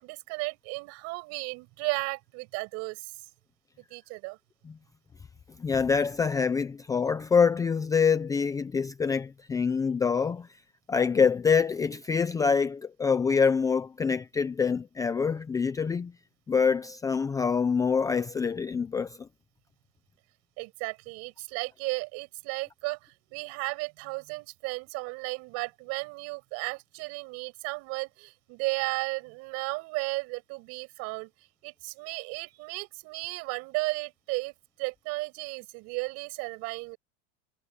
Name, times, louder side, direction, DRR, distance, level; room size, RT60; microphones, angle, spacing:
voice 1, 0.0-3.1 3.9-4.4 20.6-31.3 31.6-34.5 34.8-37.0, right 26 dB, 50° right, 6.0 m, -34 dB
voice 2, 5.6-10.5 10.9-16.1 16.5-19.1, left 6 dB, 10° left, 0.5 m, -25 dB
cardioid pair, 165°, 33 cm